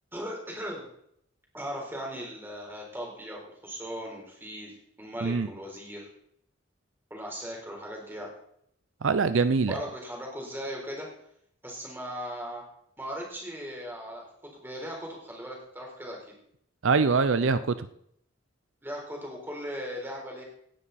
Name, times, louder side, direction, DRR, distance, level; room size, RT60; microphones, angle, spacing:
voice 1, 0.1-0.9 1.5-6.1 7.1-8.3 9.7-11.1 11.6-12.6 13.0-14.3 14.5-16.2 18.8-20.4, equal, 10° right, -1 dB, 4.0 m, -38 dB
voice 2, 9.0-9.8 16.8-17.9, right 4 dB, 75° right, 13 dB, 0.6 m, -24 dB
17.5 x 10.0 x 4.2 m, 0.72 s
head